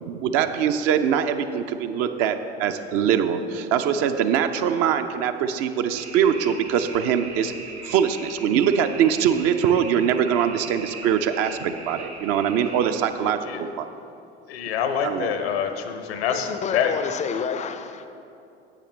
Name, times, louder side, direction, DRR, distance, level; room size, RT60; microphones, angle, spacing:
voice 1, 0.0-7.5 7.8-13.9 15.0-15.3, right 8 dB, 45° right, 8 dB, 0.6 m, -23 dB
sound 1, 5.9-12.9, right 3 dB, 80° right, 1.5 m, -40 dB
voice 2, 14.5-16.9, left 8 dB, 65° left, 7 dB, 0.8 m, -26 dB
voice 3, 16.1-18.1, left 6 dB, 20° left, 10 dB, 0.5 m, -29 dB
11.0 x 8.3 x 3.2 m, 2.7 s
figure-of-eight pair, 65°, 33 cm